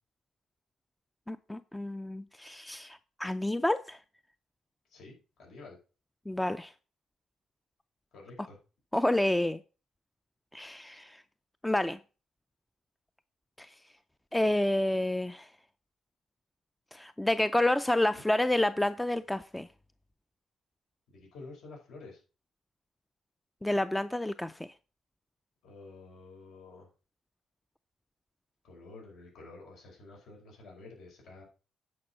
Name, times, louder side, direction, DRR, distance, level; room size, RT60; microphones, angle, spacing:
voice 1, 1.3-4.0 6.3-6.7 8.9-9.6 10.5-11.2 11.6-12.0 13.6-13.7 14.3-15.5 16.9-19.7 23.6-24.6, left 1 dB, 10° left, 0.4 m, -29 dB
voice 2, 4.9-5.8 8.1-8.6 21.1-22.2 25.6-26.9 28.6-31.4, left 3 dB, 75° left, 4.7 m, -50 dB
9.5 x 5.4 x 5.6 m
cardioid pair, 90°, 0 cm